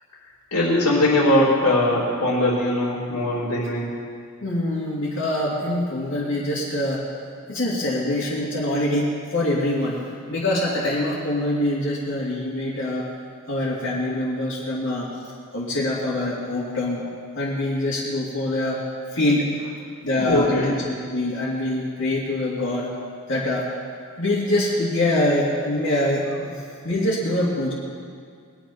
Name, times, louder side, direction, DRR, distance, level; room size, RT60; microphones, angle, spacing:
voice 1, 0.5-3.9 20.1-20.7, left 1 dB, 85° left, -9 dB, 3.1 m, -20 dB
voice 2, 4.4-7.0 7.5-10.0 10.3-13.1 13.5-15.1 15.5-17.0 17.4-18.8 19.1-19.5 20.0-20.8 21.1-22.9 23.3-23.7 24.2-27.7, left 1 dB, 55° left, -6 dB, 2.6 m, -24 dB
21.0 x 9.6 x 5.8 m, 2.2 s
head